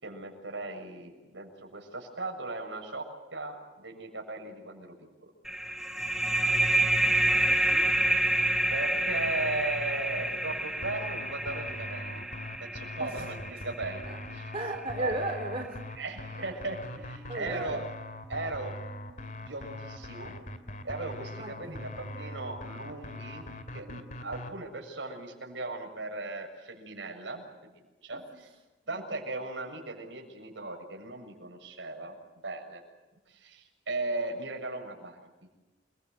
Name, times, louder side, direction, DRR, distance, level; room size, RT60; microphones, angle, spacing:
voice 1, 0.0-4.9 5.2-5.3 8.7-12.2 12.6-14.5 15.0-15.1 16.0-17.8 18.3-18.7 19.4-20.3 20.8-23.5 23.7-27.7 28.0-28.5 28.9-32.2 32.4-32.8 33.3-35.2, right 2 dB, 85° right, 3 dB, 7.1 m, -37 dB
sound 1, 5.5-14.7, right 1 dB, 5° right, 1.6 m, -28 dB
voice 2, 7.5-7.9 13.0-13.3 14.0-14.2 14.5-15.8 16.4-16.5 17.3-17.8 21.4-21.9 28.1-28.4, right 1 dB, 30° right, 2 dB, 3.5 m, -36 dB
sound 2, 10.8-24.5, left 1 dB, 45° left, 2.5 m, -42 dB
29.5 x 22.5 x 8.1 m, 1.1 s
head